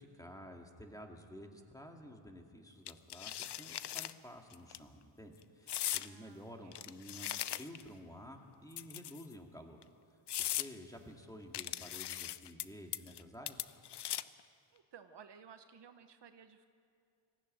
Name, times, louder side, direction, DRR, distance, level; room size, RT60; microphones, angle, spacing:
voice 1, 0.0-9.8 10.4-13.7, equal, 5° left, 3 dB, 2.2 m, -52 dB
sound 1, 2.9-4.1 4.5-4.8 5.7-6.1 6.7-7.9 8.7-9.3 9.8-9.9 10.3-10.7 11.5-12.6 12.9-13.2 13.5-14.4, left 12 dB, 55° left, 0.7 m, -39 dB
voice 2, 5.9-6.8 10.7-11.2 14.7-16.7, right 7 dB, 60° right, 9 dB, 1.0 m, -57 dB
19.5 x 15.0 x 9.1 m, 2.6 s
cardioid pair, 80°, 48 cm